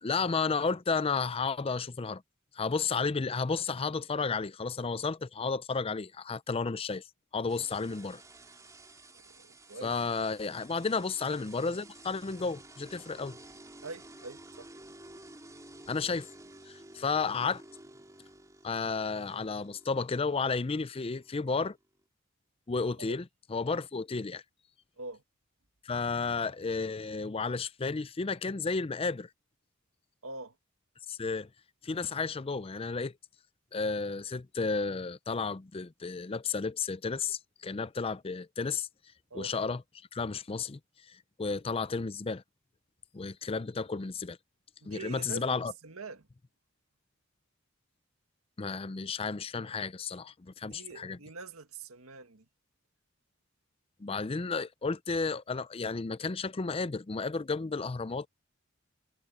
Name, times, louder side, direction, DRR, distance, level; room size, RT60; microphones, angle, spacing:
voice 1, 0.0-2.2 2.5-7.0 7.3-8.2 9.8-13.4 15.9-16.3 16.7-17.6 18.6-21.8 22.7-24.4 25.8-29.3 31.1-31.5 31.8-33.1 33.7-38.9 39.3-39.8 40.1-40.8 41.1-42.4 43.1-44.4 44.9-45.7 48.6-51.2 54.0-58.3, left 4 dB, 25° left, 0.5 m, -32 dB
sound 1, 7.5-22.0, right 2 dB, 15° right, 3.0 m, -53 dB
voice 2, 9.1-9.9 13.8-14.7 23.0-23.2 25.0-25.2 30.2-30.5 39.3-39.5 44.8-46.3 50.6-52.4, right 3 dB, 90° right, 1.7 m, -44 dB
head